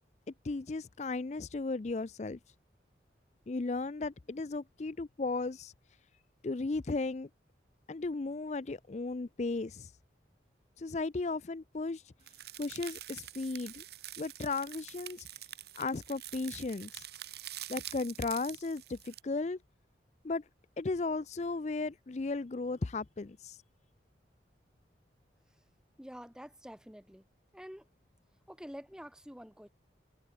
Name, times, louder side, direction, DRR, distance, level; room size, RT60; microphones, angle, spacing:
voice 1, 0.4-2.4 3.5-5.7 6.4-7.3 7.9-9.9 10.8-12.1 12.6-13.8 14.2-15.3 15.8-17.0 17.7-19.6 20.2-20.4 20.8-23.6, left 3 dB, 40° left, 0.5 m, -35 dB
sound 1, 12.3-19.2, right 13 dB, 60° right, 2.9 m, -46 dB
voice 2, 26.0-27.2 27.5-27.8 28.5-29.7, equal, 5° right, 2.2 m, -48 dB
head